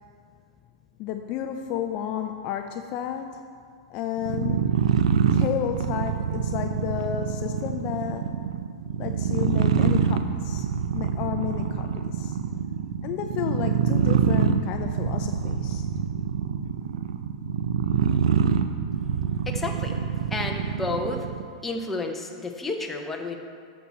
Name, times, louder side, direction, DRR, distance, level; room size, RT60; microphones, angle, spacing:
voice 1, 1.0-3.5 3.9-5.0 5.3-8.4 9.0-10.7 10.9-12.4 13.0-15.9, left 10 dB, 35° left, 6 dB, 0.4 m, -32 dB
sound 1, 4.2-21.5, right 8 dB, 75° right, 0.6 m, -25 dB
voice 2, 19.5-20.0 20.3-21.3 21.6-23.4, left 3 dB, 5° left, 2 dB, 0.8 m, -31 dB
10.5 x 7.1 x 4.2 m, 2.1 s
supercardioid pair, 150°, 3 cm